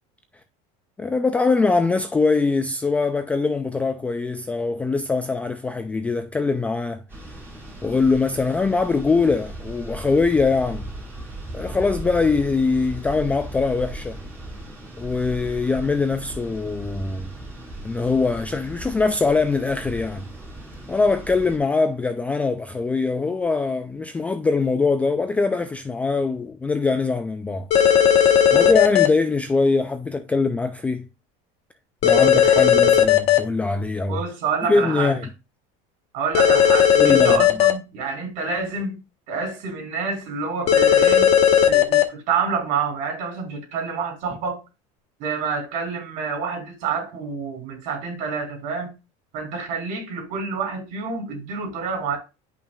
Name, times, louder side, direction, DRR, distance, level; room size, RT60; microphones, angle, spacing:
voice 1, 1.0-7.0 7.8-10.9 11.5-14.2 15.0-17.3 17.8-20.3 20.9-27.7 28.5-31.1 32.0-34.2 34.7-35.3 37.0-37.4, left 4 dB, 10° left, 0.3 m, -22 dB
sound 1, 7.1-21.6, right 1 dB, 15° right, 4.1 m, -37 dB
sound 2, 27.7-29.1 32.0-33.4 36.3-37.7 40.7-42.0, left 9 dB, 40° left, 1.1 m, -15 dB
voice 2, 34.1-35.2 36.1-39.0 39.3-44.6 45.2-48.9 49.3-52.2, right 5 dB, 50° right, 3.9 m, -28 dB
10.5 x 5.7 x 2.4 m
cardioid pair, 170°, 17 cm